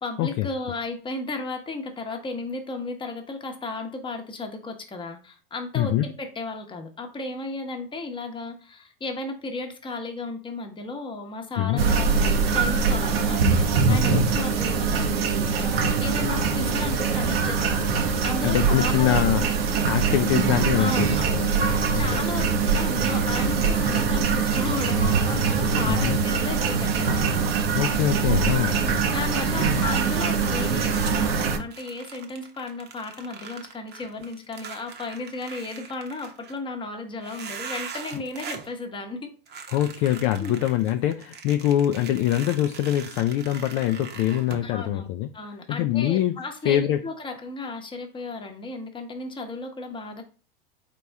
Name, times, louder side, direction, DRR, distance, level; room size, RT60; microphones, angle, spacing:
voice 1, 0.0-19.5 20.8-21.5 21.9-27.2 28.8-39.3 40.4-40.6 44.6-45.1 45.3-50.2, left 3 dB, 15° left, 1.0 m, -34 dB
voice 2, 5.7-6.1 11.6-11.8 13.9-14.2 18.4-19.5 19.8-21.6 21.9-22.2 25.9-26.2 27.7-28.8 39.7-45.3 45.7-47.0, left 12 dB, 45° left, 0.4 m, -24 dB
sound 1, 11.8-31.6, right 5 dB, 80° right, 0.9 m, -23 dB
sound 2, 29.6-31.2 31.7-36.6 37.2-38.7 39.5-44.7, right 6 dB, 35° right, 0.9 m, -41 dB
4.2 x 3.0 x 3.5 m
hypercardioid pair, 105°, 29 cm